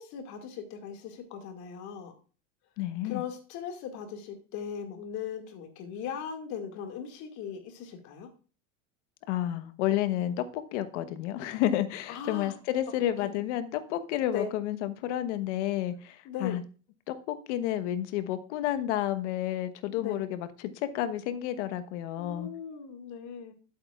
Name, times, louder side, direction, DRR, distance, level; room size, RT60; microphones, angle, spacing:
voice 1, 0.0-2.1 3.0-8.3 12.1-12.5 13.2-13.3 14.3-14.5 16.2-16.6 20.0-20.2 22.2-23.5, left 7 dB, 50° left, 4 dB, 2.1 m, -38 dB
voice 2, 2.8-3.2 9.3-16.6 17.1-20.5 20.9-22.5, left 12 dB, 70° left, 11 dB, 1.1 m, -31 dB
12.0 x 7.8 x 2.4 m, 0.37 s
supercardioid pair, 145°, 38 cm